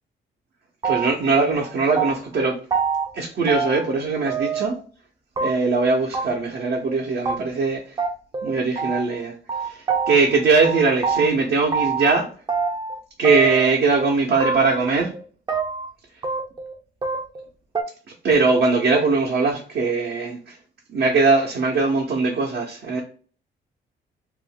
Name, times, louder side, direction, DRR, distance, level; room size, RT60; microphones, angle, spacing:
sound 1, 0.8-1.3 1.6-2.4 2.7-3.1 3.5-4.0 4.3-4.8 5.4-5.8 6.1-6.2 6.5-6.6 6.9-7.0 7.2-7.4 7.6-7.7 8.0-9.2 9.5-10.4 10.6-12.1 12.5-13.0 13.2-14.1 14.4-14.9 15.1-15.9 16.2-16.8 17.0-17.5 17.7-17.8, right 5 dB, 20° right, 0.5 m, -25 dB
voice 1, 0.8-2.6 3.1-4.8 5.4-8.0 8.4-9.3 9.6-12.3 13.2-15.1 18.2-20.6 20.9-23.0, right 4 dB, 60° right, 0.7 m, -21 dB
2.5 x 2.1 x 3.6 m
cardioid pair, 90°, 20 cm